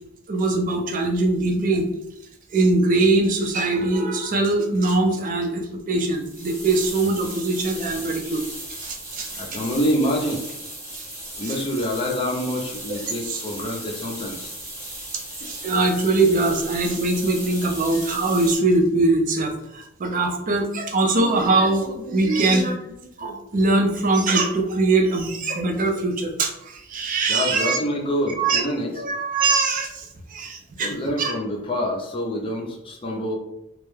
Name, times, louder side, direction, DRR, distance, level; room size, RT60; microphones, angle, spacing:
voice 1, 0.3-1.9 2.5-8.4 8.8-9.6 10.9-11.0 11.4-11.6 13.2-13.4 15.4-22.8 23.2-27.8 28.4-28.6 29.0-31.3, right 2 dB, 40° right, 3 dB, 0.4 m, -22 dB
sound 1, 6.1-18.6, right 1 dB, 10° right, 0.9 m, -36 dB
voice 2, 9.4-10.4 11.4-14.5 27.3-28.9 30.8-33.4, equal, 25° left, 0 dB, 0.4 m, -26 dB
2.2 x 2.0 x 3.1 m, 0.85 s
head